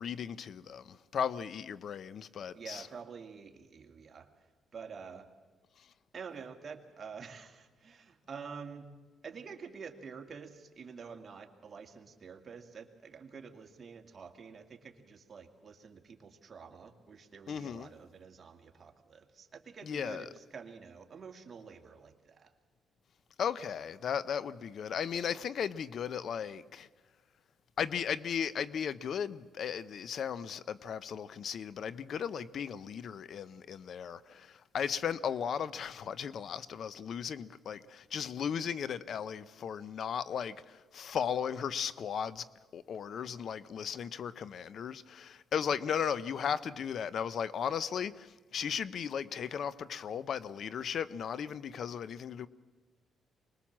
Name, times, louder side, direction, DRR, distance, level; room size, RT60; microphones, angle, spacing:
voice 1, 0.0-2.9 17.5-17.9 19.8-20.3 23.4-26.9 27.8-42.5 42.7-52.5, left 7 dB, 60° left, 0.7 m, -36 dB
voice 2, 2.5-4.3 4.7-5.3 6.1-8.9 9.2-22.5, right 5 dB, 40° right, 2.3 m, -48 dB
25.0 x 21.0 x 7.4 m
cardioid pair, 90°, 0 cm